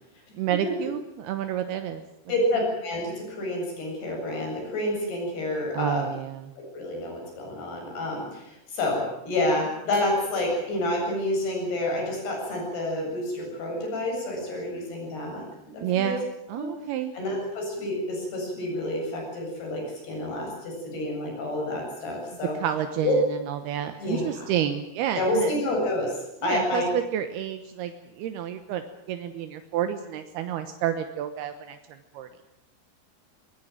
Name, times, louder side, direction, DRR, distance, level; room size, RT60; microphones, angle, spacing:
voice 1, 0.4-2.0 5.7-6.5 15.8-17.1 22.6-25.5 26.4-32.3, right 10 dB, 80° right, 8 dB, 3.1 m, -30 dB
voice 2, 2.3-6.0 6.6-16.2 16.5-16.7 17.1-22.5 23.0-23.1 24.0-24.5 25.1-26.9, left 1 dB, 80° left, 1 dB, 10.0 m, -29 dB
23.0 x 20.0 x 9.2 m, 0.86 s
omnidirectional pair, 4.6 m